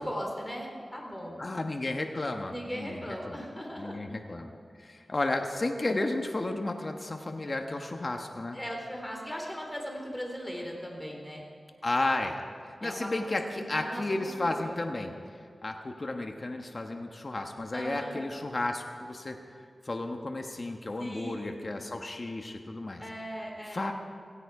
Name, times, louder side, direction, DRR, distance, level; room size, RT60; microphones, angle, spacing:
voice 1, 0.0-1.4 2.5-4.0 8.5-11.4 12.8-14.8 17.7-18.2 21.0-21.6 23.0-23.9, equal, 10° left, 0 dB, 3.7 m, -38 dB
voice 2, 1.4-3.4 3.8-4.5 4.8-8.6 11.8-12.4 12.8-15.1 15.6-19.4 19.8-23.0 23.7-23.9, left 2 dB, 45° left, 4 dB, 1.2 m, -33 dB
17.0 x 16.5 x 4.8 m, 2.2 s
wide cardioid pair, 70°, 0 cm